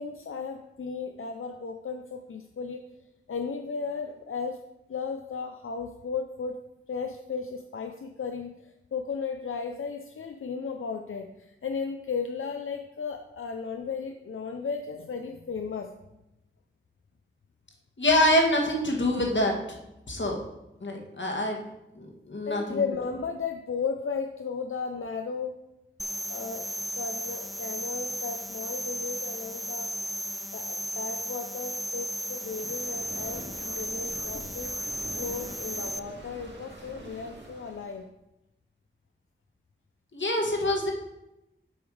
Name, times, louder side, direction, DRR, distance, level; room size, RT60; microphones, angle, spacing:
voice 1, 0.0-2.8 3.3-4.6 4.9-6.6 6.9-8.5 8.9-11.3 11.6-15.9 22.5-25.6 26.3-26.7 27.0-29.9 30.5-34.7 35.2-38.0, left 5 dB, 85° left, 5 dB, 0.5 m, -35 dB
voice 2, 18.0-19.8 20.1-20.4 20.8-21.6 22.0-22.8 40.1-40.9, left 1 dB, 65° left, 1 dB, 1.5 m, -25 dB
sound 1, 26.0-36.0, equal, ahead, 0.3 m, -35 dB
sound 2, 32.3-38.0, right 1 dB, 60° right, 2.0 m, -45 dB
7.9 x 5.3 x 4.8 m, 0.92 s
wide cardioid pair, 70°, 21 cm